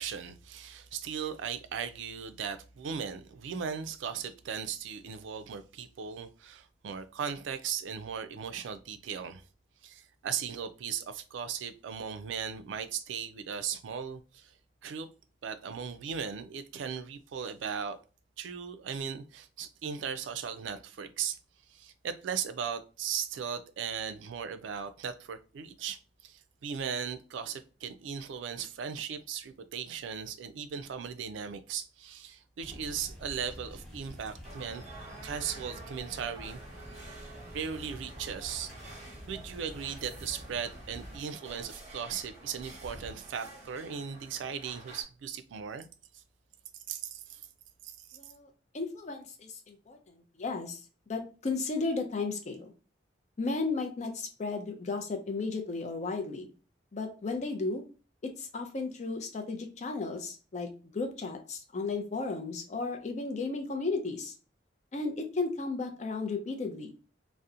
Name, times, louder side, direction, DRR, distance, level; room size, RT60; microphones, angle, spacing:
voice 1, 0.0-9.4 9.8-14.5 14.8-15.1 15.4-18.0 18.4-21.4 21.7-34.9 35.2-36.6 37.5-38.7 39.3-45.9 46.1-46.2 46.9-47.4 47.8-48.2, right 7 dB, 85° right, 0.3 m, -37 dB
sound 1, 32.6-41.2, equal, 5° left, 0.8 m, -48 dB
sound 2, 34.4-45.0, right 2 dB, 35° right, 0.6 m, -49 dB
voice 2, 48.1-48.5 48.7-50.8 51.1-52.7 53.4-56.5 56.9-57.8 58.2-60.7 60.9-64.3 64.9-66.9, left 3 dB, 40° left, 0.4 m, -34 dB
2.7 x 2.0 x 2.4 m
head